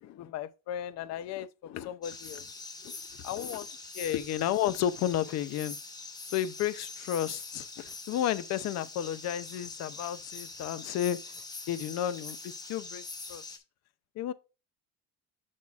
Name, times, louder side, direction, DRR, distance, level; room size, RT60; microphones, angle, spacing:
voice 1, 0.0-2.5 2.8-3.0 3.2-3.7 3.9-5.8 6.3-11.2 11.7-13.0 13.3-13.5 14.2-14.3, left 11 dB, 50° left, 0.5 m, -33 dB
sound 1, 2.0-13.6, left 3 dB, 10° left, 0.6 m, -44 dB
7.1 x 6.3 x 2.4 m
cardioid pair, 180°, 34 cm